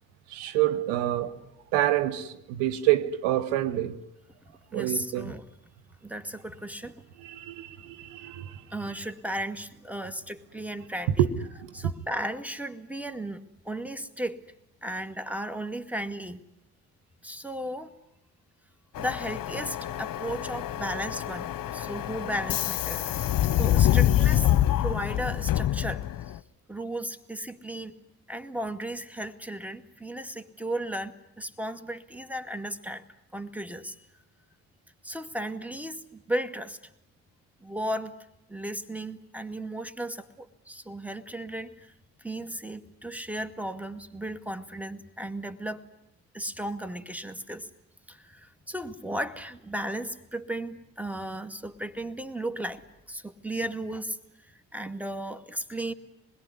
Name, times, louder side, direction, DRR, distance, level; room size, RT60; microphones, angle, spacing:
voice 1, 0.3-1.4 1.7-4.0 4.7-5.3 7.2-8.6 11.2-11.3 11.8-11.9, right 13 dB, 75° right, 1.5 m, -27 dB
voice 2, 4.7-5.4 6.0-7.0 8.7-11.3 11.7-14.4 14.8-16.4 17.2-17.9 19.0-24.5 24.8-26.0 26.7-27.9 28.3-33.1 33.3-34.0 35.0-36.8 37.6-38.1 38.5-41.9 42.2-45.8 46.3-47.7 48.1-54.2 54.5-55.9, right 1 dB, 5° right, 2.2 m, -35 dB
Subway metro underground, 19.0-26.4, left 12 dB, 55° left, 1.1 m, -26 dB
27.0 x 21.0 x 9.8 m
hypercardioid pair, 50°, 41 cm